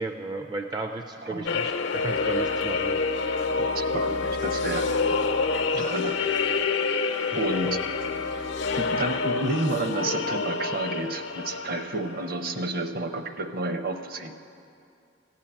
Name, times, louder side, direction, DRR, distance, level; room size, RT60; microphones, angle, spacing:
voice 1, 0.0-3.0 7.6-7.8, right 2 dB, 20° right, 5 dB, 0.4 m, -34 dB
voice 2, 1.2-1.6 3.7-5.0 5.7-6.2 7.4-7.8 8.8-14.4, right 2 dB, 55° right, 7 dB, 0.7 m, -30 dB
sound 1, 1.5-12.2, left 4 dB, 80° left, 0.7 m, -27 dB
15.0 x 5.7 x 8.7 m, 2.5 s
head